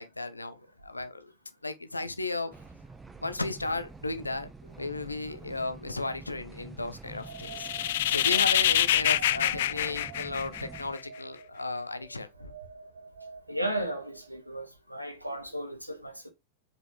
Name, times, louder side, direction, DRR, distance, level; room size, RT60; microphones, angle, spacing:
voice 1, 0.0-1.3 1.6-2.5 3.2-4.5 4.8-7.7 8.1-12.5, left 2 dB, 80° left, 1.0 m, -34 dB
sound 1, 2.5-10.9, right 3 dB, 10° right, 1.0 m, -48 dB
sound 2, 7.2-14.5, right 6 dB, 65° right, 1.1 m, -47 dB
sound 3, 7.4-11.0, left 13 dB, 55° left, 0.4 m, -26 dB
voice 2, 13.5-16.3, right 1 dB, 90° right, 1.6 m, -35 dB
7.9 x 4.8 x 3.3 m
figure-of-eight pair, 90°, 0 cm